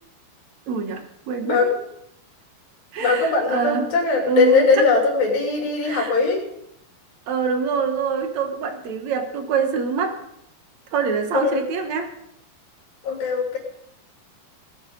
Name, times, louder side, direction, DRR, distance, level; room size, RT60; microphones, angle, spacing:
voice 1, 0.7-1.7 2.9-3.9 4.3-4.8 5.8-6.2 7.3-10.2 10.9-12.1, right 5 dB, 65° right, 6 dB, 2.0 m, -25 dB
voice 2, 1.4-1.8 3.0-6.5 11.3-11.7 13.0-13.6, left 4 dB, 65° left, 0 dB, 4.6 m, -20 dB
19.0 x 8.9 x 5.1 m, 0.77 s
omnidirectional pair, 4.4 m